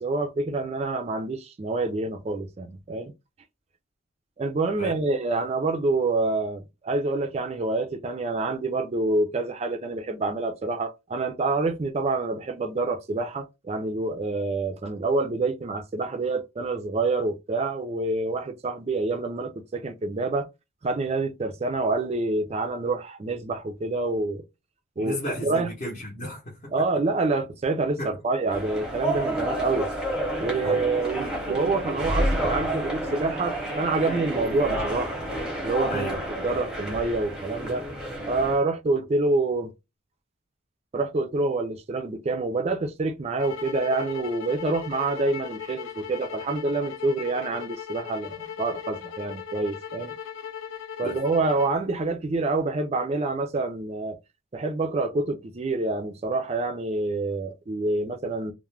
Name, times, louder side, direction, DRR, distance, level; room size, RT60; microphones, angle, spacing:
voice 1, 0.0-3.1 4.4-20.5 20.8-24.4 25.0-25.2 25.4-25.7 26.7-29.9 30.4-35.2 35.6-37.8 38.3-39.7 40.9-50.1 51.0-54.2 54.5-58.5, right 3 dB, 30° right, 0.3 m, -27 dB
voice 2, 25.0-26.7 28.0-28.1 30.6-30.8 35.9-36.2 51.0-51.2, equal, 35° left, 0.7 m, -33 dB
sound 1, 28.5-38.6, right 1 dB, 5° right, 0.7 m, -30 dB
sound 2, 43.4-51.8, left 8 dB, 75° left, 0.4 m, -38 dB
2.4 x 2.1 x 3.1 m
head